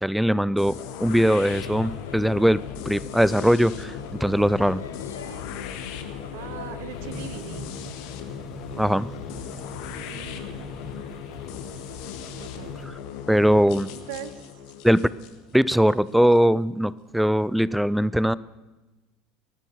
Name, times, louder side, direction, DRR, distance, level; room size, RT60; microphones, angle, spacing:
voice 1, 0.0-4.8 8.8-9.1 13.3-13.9 14.8-15.1 15.5-18.3, equal, ahead, 20 dB, 0.5 m, -21 dB
sound 1, 0.6-16.4, left 8 dB, 60° left, 1.5 m, -38 dB
Male speech man speaking / Child speech kid speaking / Chatter, 1.4-7.4, left 7 dB, 75° left, 1.6 m, -40 dB
voice 2, 6.3-7.7 10.1-10.7 12.4-12.8 13.9-14.3, right 11 dB, 60° right, 13 dB, 1.0 m, -40 dB
sound 2, 6.9-12.9, equal, 40° left, 3.2 m, -42 dB
20.0 x 14.5 x 4.0 m, 1.1 s
figure-of-eight pair, 70°, 0 cm